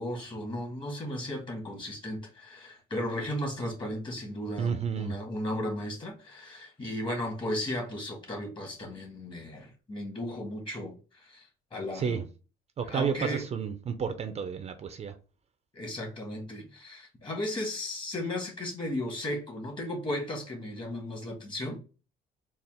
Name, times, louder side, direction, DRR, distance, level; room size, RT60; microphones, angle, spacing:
voice 1, 0.0-12.2 12.8-13.5 15.7-21.8, left 1 dB, 30° left, 1.8 m, -35 dB
voice 2, 4.6-5.2 11.9-12.2 12.8-15.1, right 6 dB, 40° right, 0.5 m, -31 dB
4.1 x 2.4 x 3.6 m
cardioid pair, 110°, 17 cm